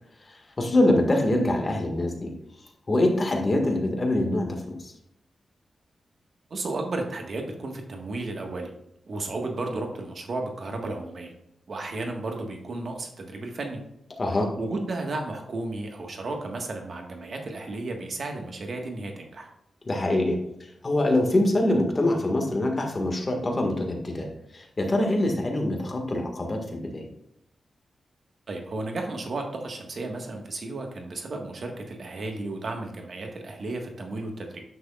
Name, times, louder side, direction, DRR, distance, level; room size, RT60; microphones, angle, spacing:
voice 1, 0.2-2.3 2.9-4.9 14.2-14.5 19.9-20.4 20.8-24.3 24.5-27.1, left 1 dB, 35° left, 2 dB, 1.8 m, -24 dB
voice 2, 6.5-8.7 9.1-11.3 11.7-13.8 14.6-19.5 28.5-34.6, right 2 dB, 60° right, 2 dB, 1.5 m, -33 dB
9.4 x 6.3 x 2.4 m, 0.78 s
cardioid pair, 90°, 0 cm